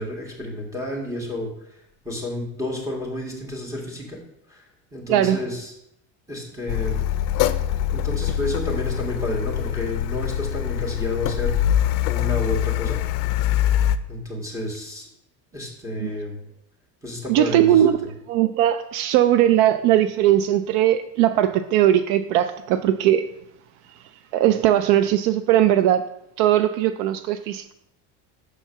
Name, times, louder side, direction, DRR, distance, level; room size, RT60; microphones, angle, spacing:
voice 1, 0.0-4.2 4.5-4.6 4.9-5.7 6.3-7.0 7.9-11.6 12.1-13.0 14.1-15.1 15.5-16.4 17.0-18.1, left 1 dB, 10° right, 2.1 m, -30 dB
Car, 6.7-14.0, left 11 dB, 60° left, 0.5 m, -23 dB
voice 2, 17.3-18.0 18.3-23.3 24.3-26.1 26.4-27.7, right 12 dB, 70° right, 0.5 m, -19 dB
6.7 x 4.5 x 5.8 m
supercardioid pair, 125°, 37 cm